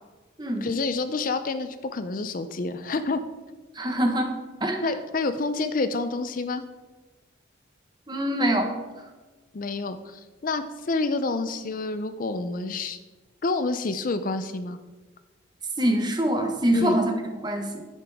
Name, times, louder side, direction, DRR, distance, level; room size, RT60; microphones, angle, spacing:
voice 1, 0.6-3.2 4.8-6.6 9.5-13.0 13.4-14.8 16.7-17.0, left 3 dB, 45° left, 10 dB, 0.5 m, -28 dB
voice 2, 3.7-4.3 4.6-5.0 8.1-8.7 15.8-17.1 17.4-17.8, right 1 dB, 20° right, 4 dB, 1.2 m, -24 dB
10.5 x 9.1 x 3.6 m, 1.3 s
head